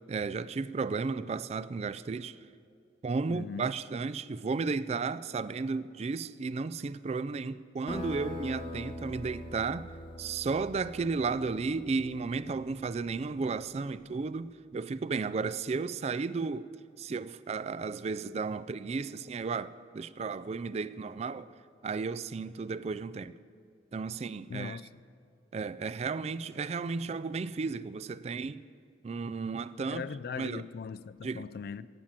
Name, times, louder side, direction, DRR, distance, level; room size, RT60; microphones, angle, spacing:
voice 1, 0.1-2.4 3.0-9.9 10.2-16.7 17.0-21.5 21.8-23.3 23.9-24.8 25.5-28.6 29.0-30.0 30.4-30.6 31.2-31.4, right 4 dB, 35° right, 0.3 m, -34 dB
voice 2, 3.3-3.7 24.5-24.9 29.8-31.9, left 6 dB, 55° left, 0.3 m, -39 dB
sound 1, 7.9-13.0, left 1 dB, 25° left, 1.0 m, -43 dB
16.0 x 7.4 x 9.0 m
head